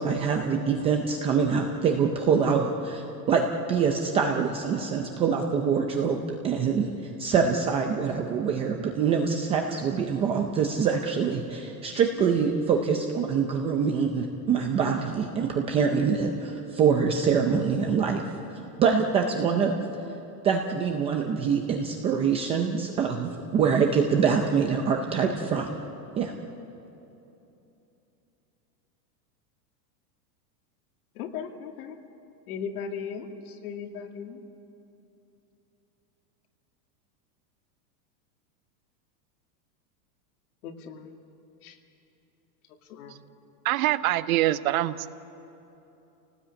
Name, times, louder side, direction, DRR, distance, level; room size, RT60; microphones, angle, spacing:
voice 1, 0.0-6.9 7.2-18.2 18.8-19.7 20.4-25.7 26.2-26.3, right 6 dB, 15° right, 2 dB, 0.5 m, -25 dB
voice 2, 31.2-32.0 32.5-33.3 33.6-34.4 40.6-41.1 41.6-41.7 42.9-43.2, left 7 dB, 60° left, 4 dB, 2.4 m, -37 dB
voice 3, 43.6-45.1, right 15 dB, 55° right, 14 dB, 0.8 m, -24 dB
27.5 x 18.0 x 8.7 m, 2.9 s
supercardioid pair, 160°, 49 cm